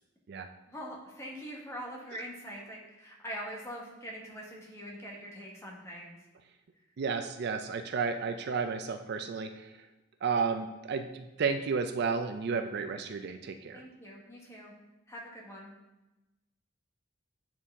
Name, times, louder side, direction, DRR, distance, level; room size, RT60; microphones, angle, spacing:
voice 1, 0.7-6.2 13.7-14.7 15.1-15.7, equal, 15° left, -2 dB, 1.3 m, -43 dB
voice 2, 7.0-9.7 10.2-13.8, right 5 dB, 55° right, 8 dB, 0.4 m, -32 dB
8.7 x 4.6 x 3.6 m, 1.0 s
head